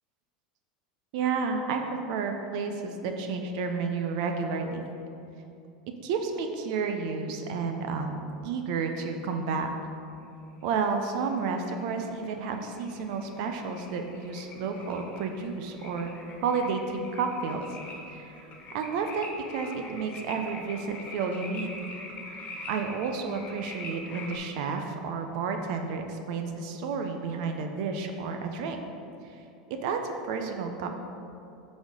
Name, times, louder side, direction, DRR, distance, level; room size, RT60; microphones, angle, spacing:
voice 1, 1.1-4.9 6.0-9.7 10.6-16.1 16.4-17.6 18.1-21.7 22.3-28.8 29.2-29.4 29.7-30.9, right 5 dB, 65° right, 5 dB, 0.7 m, -31 dB
sound 1, 10.6-24.4, left 2 dB, 35° left, 1.4 m, -44 dB
7.8 x 4.2 x 5.3 m, 2.7 s
hypercardioid pair, 105°, 4 cm